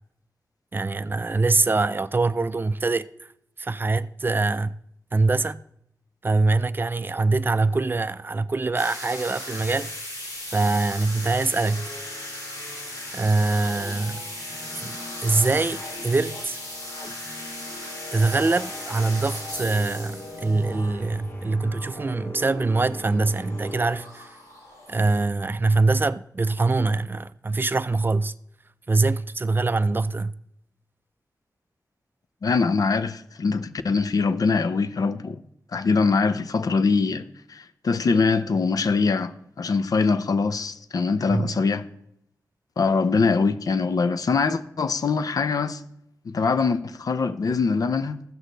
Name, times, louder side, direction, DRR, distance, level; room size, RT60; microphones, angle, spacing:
voice 1, 0.7-3.1 3.6-4.7 5.1-5.6 6.2-9.9 10.5-11.9 13.1-14.2 14.8-15.0 15.2-16.6 18.1-24.3 24.9-28.3 28.9-30.3 41.3-41.5, right 3 dB, 30° right, 0.4 m, -23 dB
sound 1, 8.8-25.2, left 1 dB, 90° left, 3.5 m, -38 dB
sound 2, 10.5-24.6, left 1 dB, 35° left, 1.2 m, -42 dB
voice 2, 32.4-35.4 35.7-41.9 42.8-45.8 46.2-48.2, left 4 dB, 70° left, 0.6 m, -23 dB
15.0 x 6.4 x 3.9 m
wide cardioid pair, 80°, 7 cm